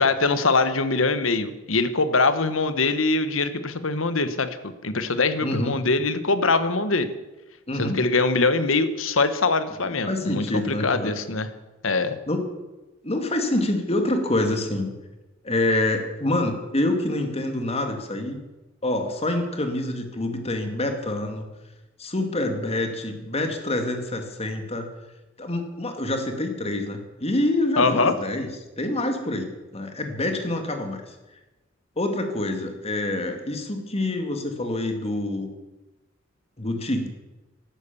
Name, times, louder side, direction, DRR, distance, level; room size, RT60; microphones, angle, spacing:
voice 1, 0.0-4.5 4.8-7.1 7.8-11.5 11.8-12.2 27.8-28.1, left 3 dB, 90° left, 12 dB, 1.3 m, -23 dB
voice 2, 5.4-5.7 7.7-8.0 10.1-11.2 12.3-12.4 13.0-14.9 15.4-18.4 18.8-21.5 22.0-24.9 25.4-28.5 28.8-31.1 32.0-35.5 36.6-37.1, left 1 dB, 30° left, 5 dB, 2.4 m, -26 dB
15.5 x 12.5 x 7.1 m, 1.1 s
head